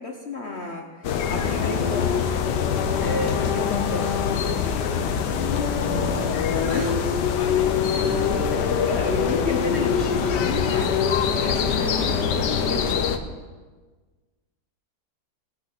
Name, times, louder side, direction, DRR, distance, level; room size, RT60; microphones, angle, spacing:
voice 1, 0.0-2.3 2.9-4.8 6.7-6.9 7.9-13.0, left 2 dB, 50° left, 2 dB, 0.8 m, -33 dB
sound 1, 1.0-13.2, left 7 dB, 65° left, 1.2 m, -23 dB
sound 2, 2.0-12.1, left 7 dB, 85° left, 1.6 m, -37 dB
voice 2, 3.1-3.6 5.7-6.9 7.6-7.7 8.2-8.3, right 7 dB, 90° right, 7 dB, 1.6 m, -38 dB
17.0 x 6.0 x 6.0 m, 1.4 s
omnidirectional pair, 2.3 m